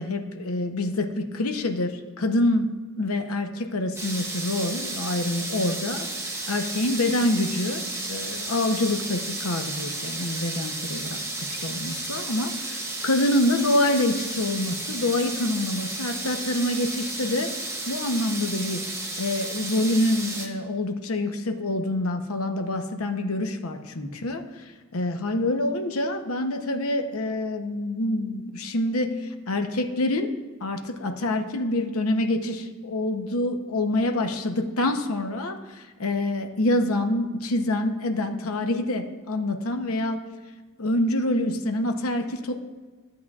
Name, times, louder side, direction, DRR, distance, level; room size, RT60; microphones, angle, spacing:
voice 1, 0.0-2.7 3.0-6.1 6.5-7.8 8.1-11.2 11.5-17.5 17.9-18.8 19.2-24.4 24.9-30.3 30.6-40.2 40.8-42.5, left 1 dB, 80° left, 5 dB, 0.8 m, -26 dB
sound 1, 4.0-20.5, right 2 dB, 10° right, 0.7 m, -33 dB
13.0 x 8.1 x 2.4 m, 1.3 s
head